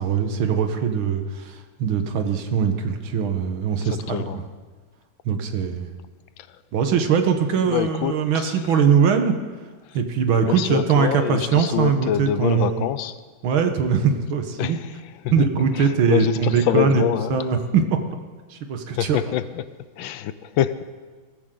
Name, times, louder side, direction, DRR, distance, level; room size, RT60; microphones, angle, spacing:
voice 1, 0.0-4.4 5.3-5.9 6.7-9.4 9.9-12.9 13.4-14.8 15.3-17.0 17.3-18.0 18.5-19.2, right 6 dB, 85° right, 6 dB, 2.0 m, -21 dB
voice 2, 3.8-4.4 7.7-8.6 10.4-13.2 14.6-14.9 15.4-15.5 15.8-17.4 18.9-19.6 20.0-20.8, left 11 dB, 80° left, 14 dB, 1.4 m, -25 dB
21.0 x 14.5 x 3.8 m, 1.4 s
omnidirectional pair, 2.2 m